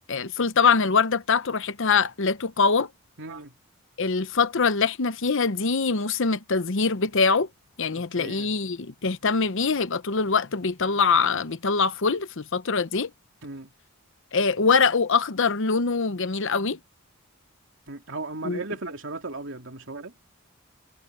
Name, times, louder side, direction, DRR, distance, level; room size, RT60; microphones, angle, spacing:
voice 1, 0.1-2.9 4.0-7.5 7.8-13.1 14.3-16.8 18.4-18.6, left 5 dB, 60° left, 0.9 m, -23 dB
voice 2, 3.2-3.5 7.9-8.5 13.4-13.7 17.9-20.1, right 2 dB, 60° right, 3.0 m, -36 dB
head